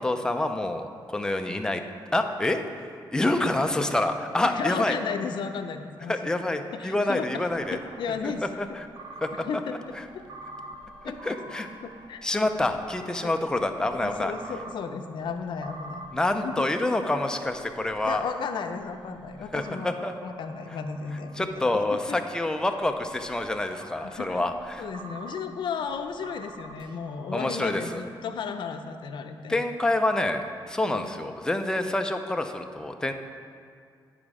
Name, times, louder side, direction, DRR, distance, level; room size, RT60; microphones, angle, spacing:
voice 1, 0.0-1.8 2.1-2.6 3.1-5.0 6.1-7.8 8.2-8.3 8.6-8.9 9.2-9.3 11.2-11.7 12.2-14.3 16.1-18.2 19.5-20.1 21.4-24.9 27.3-28.0 29.5-33.1, left 2 dB, 10° left, 6 dB, 0.5 m, -27 dB
voice 2, 4.4-6.1 6.7-8.4 9.4-9.8 10.1-10.2 11.0-11.4 11.8-12.6 13.2-13.3 13.8-16.0 16.4-16.7 18.0-22.2 24.0-24.4 24.8-29.6 30.8-31.1, left 6 dB, 65° left, 7 dB, 0.6 m, -34 dB
sound 1, 7.4-21.8 22.3-27.4, right 2 dB, 65° right, 0.7 m, -47 dB
9.4 x 5.0 x 4.9 m, 2.2 s
cardioid pair, 130°, 9 cm